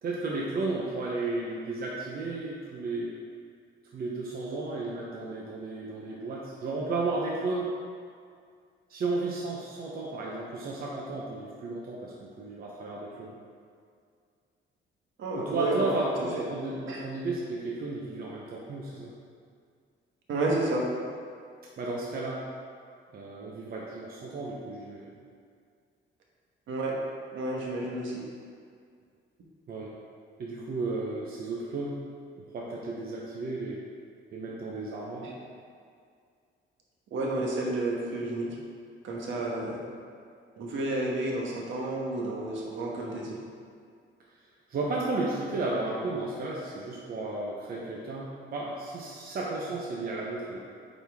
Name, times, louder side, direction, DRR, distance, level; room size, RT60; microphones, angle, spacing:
voice 1, 0.0-3.1 3.9-7.7 8.9-13.3 15.4-19.1 21.8-22.4 23.1-25.1 29.7-29.9 30.4-32.0 32.4-33.8 34.3-35.3 44.7-50.6, right 3 dB, 50° right, -4 dB, 0.9 m, -33 dB
voice 2, 15.2-15.9 16.4-16.5 16.9-17.0 20.3-20.9 26.7-27.0 27.3-28.2 35.2-35.3 37.1-38.6 39.0-39.8 40.6-43.4, right 2 dB, 75° right, -2 dB, 1.3 m, -31 dB
8.8 x 4.3 x 3.5 m, 2.2 s
cardioid pair, 150°, 20 cm